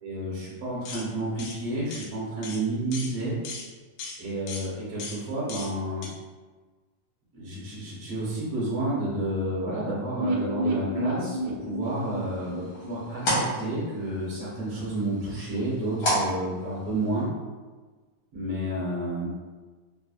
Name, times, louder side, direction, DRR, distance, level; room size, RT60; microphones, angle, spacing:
voice 1, 0.0-3.4 4.2-6.1 7.3-17.3 18.3-19.3, right 1 dB, 60° right, -9 dB, 1.8 m, -30 dB
sound 1, 0.8-1.1 1.4-1.6 1.9-2.1 2.4-2.6 2.9-3.1 3.4-3.7 4.0-4.2 4.5-4.7 5.0-5.2 5.5-5.7 6.0-6.1, left 4 dB, 85° left, 2.0 m, -38 dB
sound 2, 10.2-14.1 14.3-14.4 14.7-14.8, right 1 dB, 85° right, 2.0 m, -31 dB
sound 3, 11.8-17.2, equal, 50° left, 1.0 m, -33 dB
4.7 x 2.3 x 2.3 m, 1.3 s
omnidirectional pair, 3.4 m